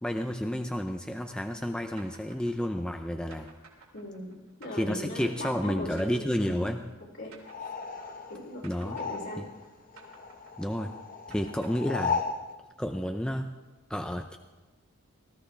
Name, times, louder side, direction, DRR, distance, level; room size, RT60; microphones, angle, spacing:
voice 1, 0.0-3.5 4.7-6.8 8.6-9.0 9.4-9.5 10.6-10.9 11.3-12.2 12.8-13.5 13.9-14.4, equal, 5° left, 5 dB, 0.5 m, -31 dB
sound 1, 2.0-8.3 8.6-12.5, right 4 dB, 70° right, 3.0 m, -55 dB
voice 2, 3.9-6.7 7.2-7.7 8.3-9.5, left 1 dB, 55° left, 0 dB, 3.1 m, -39 dB
sound 2, 7.4-9.7 9.9-12.4, left 5 dB, 40° left, 1.1 m, -35 dB
19.0 x 13.5 x 3.4 m, 1.2 s
head